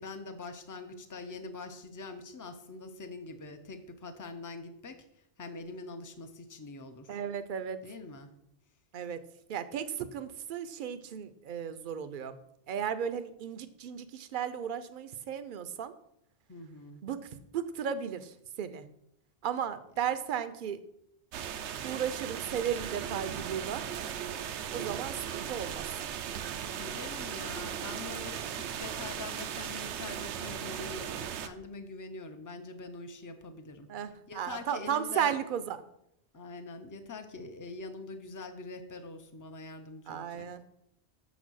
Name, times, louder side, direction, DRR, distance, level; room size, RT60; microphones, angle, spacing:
voice 1, 0.0-7.2 7.8-8.3 16.5-17.0 26.7-33.9 34.3-35.3 36.3-40.5, left 3 dB, 25° left, 7 dB, 0.5 m, -44 dB
voice 2, 7.1-7.8 8.9-9.2 9.5-12.4 12.7-15.9 17.0-18.9 19.4-20.8 21.8-23.8 24.7-25.9 33.9-35.8 40.1-40.6, right 8 dB, 55° right, 12 dB, 0.7 m, -35 dB
sound 1, 21.3-31.5, right 9 dB, 90° right, 0.9 m, -37 dB
6.7 x 4.0 x 6.2 m, 0.76 s
omnidirectional pair, 1.1 m